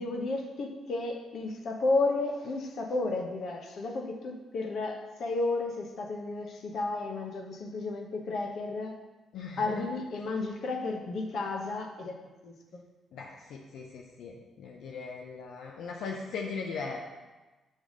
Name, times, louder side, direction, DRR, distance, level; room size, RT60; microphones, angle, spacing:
voice 1, 0.0-9.0 9.6-12.2 12.4-12.8, left 3 dB, 60° left, 3 dB, 1.0 m, -32 dB
voice 2, 9.3-9.9 13.1-17.0, left 5 dB, 80° left, -1 dB, 0.7 m, -39 dB
7.4 x 3.4 x 6.3 m, 1.2 s
cardioid pair, 90°, 0 cm